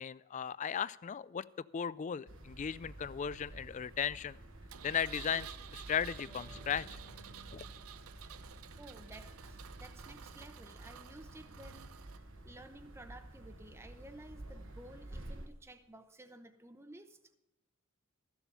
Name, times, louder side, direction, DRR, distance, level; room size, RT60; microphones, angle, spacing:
voice 1, 0.0-1.5 1.7-4.4 4.8-7.0 7.5-7.6, left 7 dB, 35° left, 18 dB, 0.3 m, -36 dB
sound 1, 2.3-15.5, right 1 dB, 65° right, 1.3 m, -51 dB
Engine, 4.7-12.2, right 9 dB, 90° right, 0.6 m, -52 dB
Harp, 6.3-9.6 10.0-11.1, right 3 dB, 20° left, 1.5 m, -64 dB
voice 2, 8.8-11.9 12.4-17.4, right 1 dB, 10° right, 8 dB, 0.8 m, -54 dB
14.5 x 7.2 x 5.4 m, 0.98 s
head